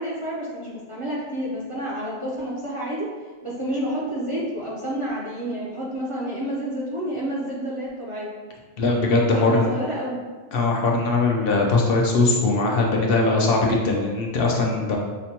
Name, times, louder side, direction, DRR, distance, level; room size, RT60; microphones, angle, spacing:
voice 1, 0.0-3.1 3.4-8.3 9.3-10.2, right 1 dB, 40° right, -6 dB, 0.5 m, -29 dB
voice 2, 8.8-9.7 10.5-15.0, left 3 dB, 65° left, -1 dB, 0.8 m, -20 dB
5.0 x 2.1 x 2.8 m, 1.4 s
omnidirectional pair, 1.1 m